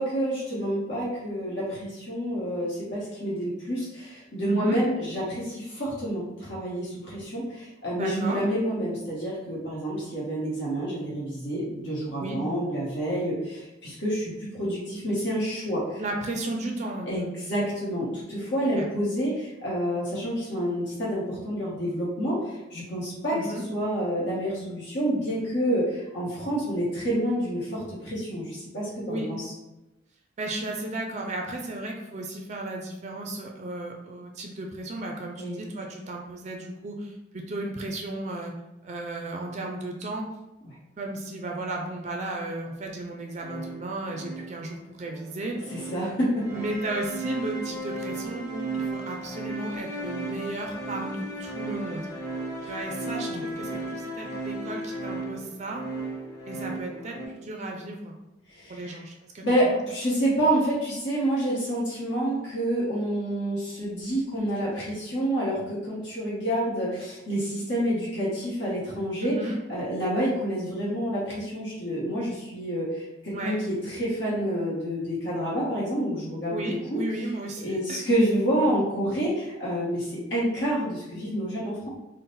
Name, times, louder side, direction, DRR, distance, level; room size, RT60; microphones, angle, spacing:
voice 1, 0.0-16.0 17.1-23.4 23.7-29.5 35.4-35.6 40.6-40.7 45.9-46.4 53.3-53.4 58.5-59.0 59.4-69.3 69.7-77.0 77.6-81.9, right 1 dB, 65° left, -7 dB, 1.1 m, -28 dB
voice 2, 4.5-4.8 8.0-8.4 12.2-12.4 16.0-17.3 18.7-18.9 23.3-23.6 29.0-29.3 30.4-38.5 38.8-40.3 41.0-45.7 46.5-52.1 52.7-55.8 56.5-58.2 58.7-59.8 69.2-69.6 73.3-73.6 76.5-78.0, right 2 dB, 35° right, 1 dB, 0.4 m, -34 dB
sound 1, 43.3-57.3, right 2 dB, 20° left, 0.8 m, -35 dB
3.8 x 2.1 x 4.0 m, 0.98 s
head